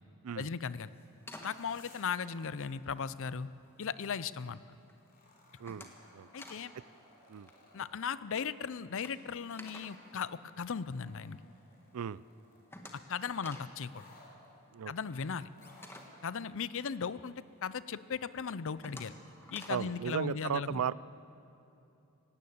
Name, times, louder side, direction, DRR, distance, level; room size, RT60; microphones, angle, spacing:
voice 1, 0.4-0.9 1.4-3.5 3.8-4.8 6.3-6.7 7.7-11.4 13.1-14.0 14.9-15.5 16.2-17.3 17.6-19.1 19.5-20.8, left 6 dB, 60° left, 16 dB, 0.5 m, -37 dB
sound 1, 0.7-3.2 3.7-4.2 4.6-5.0 5.3-6.7 7.0-7.1 7.4-11.2 11.5-11.6 11.9-12.0 12.2-17.3 17.7-17.8 18.3-20.0, left 1 dB, 10° left, 1.6 m, -52 dB
sound 2, 1.5-2.2 2.5-2.7 5.0-8.1 9.0-12.7 13.9-14.3 15.5-16.1 17.0-17.1, left 2 dB, 40° left, 4.9 m, -61 dB
voice 2, 19.7-20.9, right 8 dB, 75° right, 20 dB, 0.4 m, -35 dB
18.5 x 17.0 x 8.7 m, 2.8 s
head